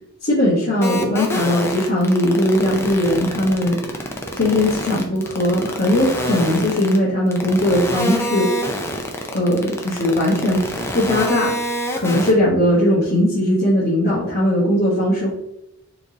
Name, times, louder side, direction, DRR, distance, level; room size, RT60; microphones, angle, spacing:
voice 1, 0.2-3.8 4.3-8.5 9.3-10.6 10.9-11.5 11.9-15.3, left 1 dB, 40° left, -9 dB, 1.1 m, -19 dB
sound 1, 0.8-7.0 7.3-12.3, equal, 10° left, 0.3 m, -26 dB
4.5 x 3.0 x 2.7 m, 0.85 s
head